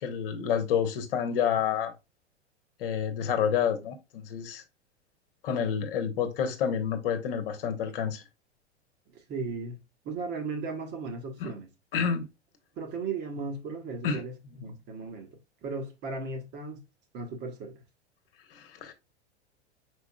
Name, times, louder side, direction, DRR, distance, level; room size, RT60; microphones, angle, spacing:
voice 1, 0.0-1.9 2.8-4.6 5.4-8.2 11.4-11.5 11.9-12.3 14.0-14.2 18.5-18.9, left 7 dB, 50° left, 1.1 m, -29 dB
voice 2, 9.1-9.8 10.0-11.7 12.7-15.3 15.6-16.8 17.1-17.7, right 4 dB, 30° right, 1.2 m, -36 dB
4.9 x 4.7 x 2.3 m
figure-of-eight pair, 95°, 34 cm